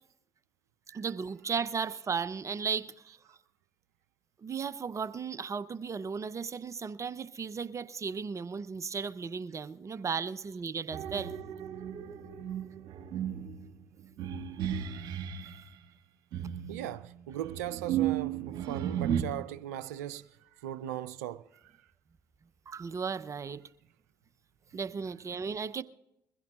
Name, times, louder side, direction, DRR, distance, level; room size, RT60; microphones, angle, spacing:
voice 1, 0.9-3.2 4.4-11.3 22.7-23.6 24.7-25.8, right 5 dB, 35° right, 0.8 m, -35 dB
sound 1, 10.9-15.6 16.3-19.2, right 10 dB, 65° right, 1.9 m, -34 dB
voice 2, 16.7-21.9 25.0-25.4, right 12 dB, 80° right, 0.5 m, -39 dB
22.0 x 15.5 x 2.5 m
hypercardioid pair, 50°, 8 cm